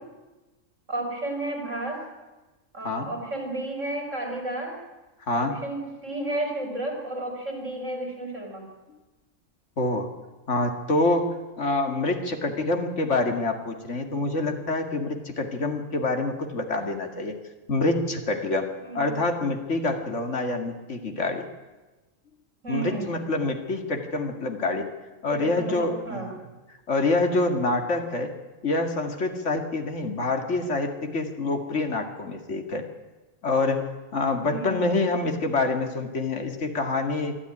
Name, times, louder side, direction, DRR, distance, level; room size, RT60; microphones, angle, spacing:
voice 1, 0.9-2.0 2.7-4.7 5.3-8.6 18.8-19.2 22.6-23.1 25.3-26.3 34.5-35.1, right 2 dB, 65° right, 2 dB, 5.6 m, -32 dB
voice 2, 9.8-10.1 10.5-11.3 11.6-17.4 17.7-21.4 22.7-24.9 25.2-26.3 26.9-28.3 28.6-32.8 33.4-37.4, left 2 dB, 60° left, 5 dB, 2.5 m, -26 dB
23.5 x 13.0 x 9.9 m, 1.2 s
omnidirectional pair, 1.4 m